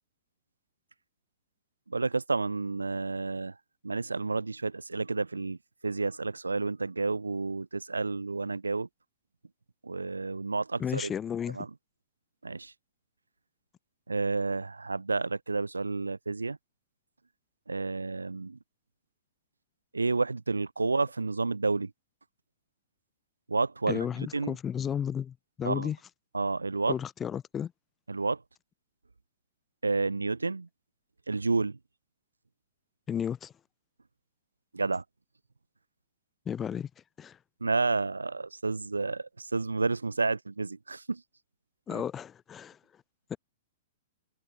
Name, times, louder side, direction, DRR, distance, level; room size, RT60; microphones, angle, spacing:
voice 1, 1.9-3.5 3.8-5.6 5.8-8.9 9.8-11.1 11.5-11.7 12.4-12.7 14.1-16.6 17.7-18.6 19.9-21.9 23.5-24.1 24.3-24.5 25.6-25.9 26.3-26.9 28.1-28.4 29.8-30.7 31.3-31.8 34.7-35.0 37.6-41.2 41.9-42.0, right 3 dB, 80° right, 0.3 m, -30 dB
voice 2, 10.8-11.6 23.9-26.0 26.9-27.7 33.1-33.5 36.5-36.9 37.2-37.4 41.9-42.8 43.3-43.4, left 8 dB, 20° left, 0.6 m, -33 dB
figure-of-eight pair, 105°, 0 cm